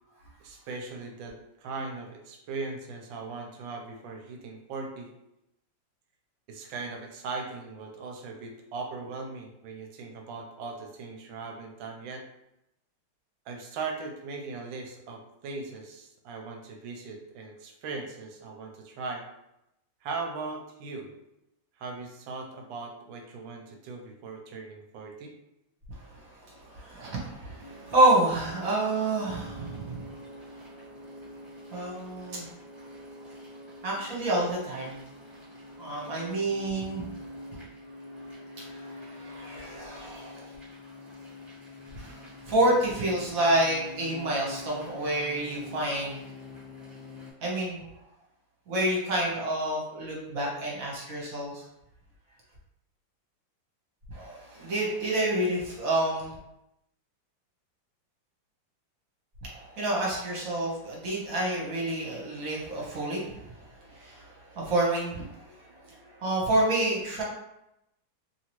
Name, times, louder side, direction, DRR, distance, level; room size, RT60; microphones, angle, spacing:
voice 1, 0.4-5.1 6.5-12.2 13.5-19.2 20.0-21.1 21.8-25.3, right 4 dB, 85° right, 2 dB, 1.4 m, -39 dB
voice 2, 26.1-30.0 31.7-32.4 33.8-35.0 35.8-37.1 38.6-40.5 42.0-46.2 47.4-47.8 48.7-51.6 54.1-56.3 59.4-63.5 63.8-65.8 66.2-67.2, right 1 dB, 55° right, -4 dB, 1.1 m, -28 dB
sound 1, 27.6-47.3, left 2 dB, 15° right, 1.1 m, -45 dB
3.1 x 2.8 x 2.9 m, 0.86 s
omnidirectional pair, 2.1 m